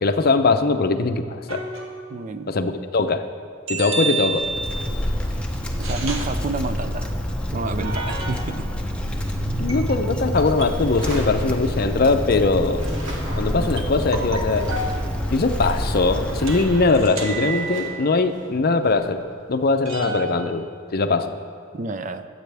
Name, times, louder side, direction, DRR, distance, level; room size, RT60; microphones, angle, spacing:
voice 1, 0.0-1.6 2.5-3.3 3.7-4.5 9.6-12.8 13.4-14.7 15.3-19.2 19.5-20.6 20.9-21.3, left 3 dB, 50° left, 8 dB, 0.6 m, -21 dB
sound 1, 1.5-2.1 3.7-5.0 5.8-6.4 7.8-8.7 9.7-11.0 13.8-15.0 16.5-18.2 19.9-20.3, right 3 dB, 85° right, 1.5 m, -30 dB
voice 2, 2.1-2.5 5.8-7.1 7.5-8.7 9.5-9.9 21.7-22.3, right 3 dB, 40° right, 10 dB, 0.5 m, -30 dB
Wind, 4.3-17.1, equal, 5° left, 0.8 m, -27 dB
sound 2, 10.8-12.4 12.7-19.9, equal, 65° right, 2.5 m, -38 dB
23.0 x 8.1 x 3.4 m, 2.2 s
head